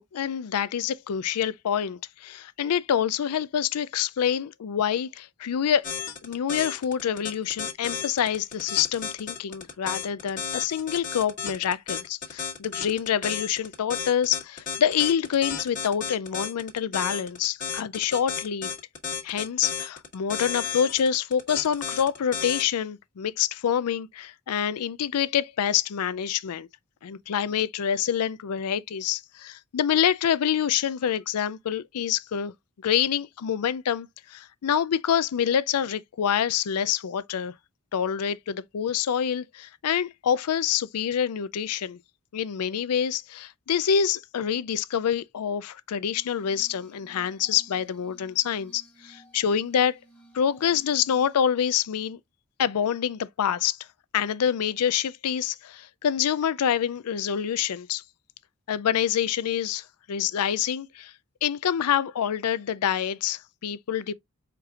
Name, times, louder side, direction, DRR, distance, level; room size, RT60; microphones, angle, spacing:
voice 1, 0.0-5.9 6.2-18.7 19.2-26.7 27.0-32.5 32.8-37.5 37.9-42.0 42.3-50.0 50.3-52.2 52.6-53.8 54.1-58.0 58.7-61.1 61.4-64.1, left 8 dB, 85° left, 0.4 m, -26 dB
sound 1, 5.8-22.6, left 7 dB, 35° left, 1.5 m, -33 dB
Glass, 46.1-51.3, right 2 dB, 5° left, 1.3 m, -55 dB
4.8 x 4.5 x 2.3 m
head